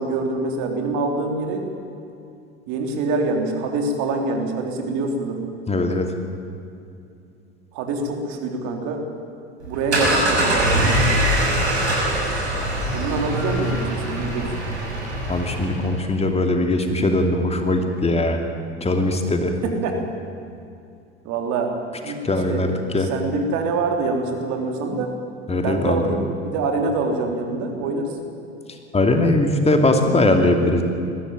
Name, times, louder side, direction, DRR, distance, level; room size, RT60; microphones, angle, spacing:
voice 1, 0.0-1.7 2.7-5.4 7.7-9.0 9.7-11.0 12.9-14.5 19.6-20.0 21.2-22.2 22.5-22.6 23.0-25.1 25.6-28.1, right 3 dB, 55° right, 3 dB, 3.6 m, -25 dB
voice 2, 5.7-6.1 15.3-18.4 18.8-19.5 22.2-23.1 25.5-26.0 28.9-30.8, left 2 dB, 20° left, 4 dB, 2.6 m, -20 dB
sound 1, 9.6-16.0, right 1 dB, 85° right, 6.1 m, -22 dB
21.0 x 15.5 x 9.0 m, 2.6 s
hypercardioid pair, 75°, 33 cm